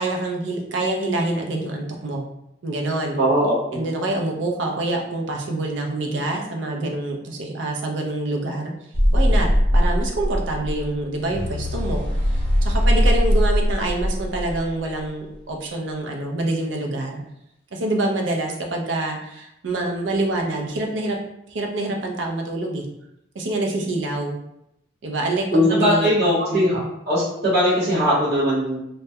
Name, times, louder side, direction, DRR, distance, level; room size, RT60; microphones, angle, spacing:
voice 1, 0.0-2.2 2.6-3.2 3.7-8.7 9.1-17.2 17.7-21.2 21.5-22.9 23.3-24.4 25.0-26.2 26.5-26.6, right 2 dB, 85° right, 1 dB, 0.5 m, -26 dB
voice 2, 3.2-3.8 25.5-26.8 27.1-28.8, equal, 60° right, -9 dB, 0.9 m, -19 dB
sound 1, 8.9-15.0, equal, 30° left, 0.6 m, -20 dB
2.2 x 2.1 x 2.7 m, 0.81 s
head